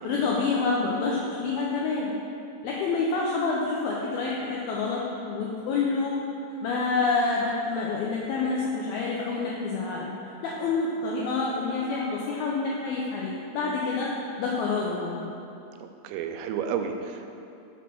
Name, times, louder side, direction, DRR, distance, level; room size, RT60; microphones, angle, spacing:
voice 1, 0.0-2.1 2.6-6.2 6.6-10.1 10.4-15.3, left 4 dB, 85° left, -3 dB, 2.1 m, -28 dB
voice 2, 16.0-17.3, right 7 dB, 90° right, 6 dB, 2.9 m, -31 dB
6.0 x 5.8 x 6.1 m, 2.7 s
omnidirectional pair, 5.1 m